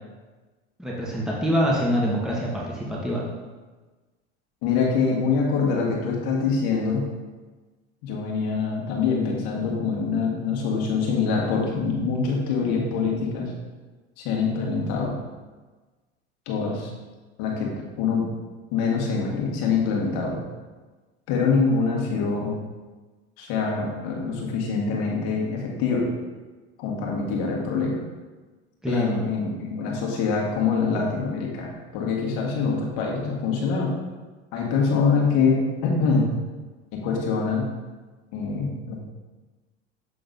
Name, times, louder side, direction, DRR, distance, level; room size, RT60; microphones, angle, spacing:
voice 1, 0.8-3.2 28.8-29.3, equal, ahead, -5 dB, 1.4 m, -25 dB
voice 2, 4.6-7.0 8.0-13.5 14.2-15.2 16.5-16.9 17.4-17.7 18.0-18.3 18.7-20.4 21.3-22.6 23.4-26.1 26.8-28.0 28.9-33.9 34.5-36.3 36.9-37.7 38.3-39.0, left 5 dB, 70° left, -2 dB, 1.7 m, -24 dB
7.8 x 3.9 x 4.0 m, 1.3 s
hypercardioid pair, 85°, 32 cm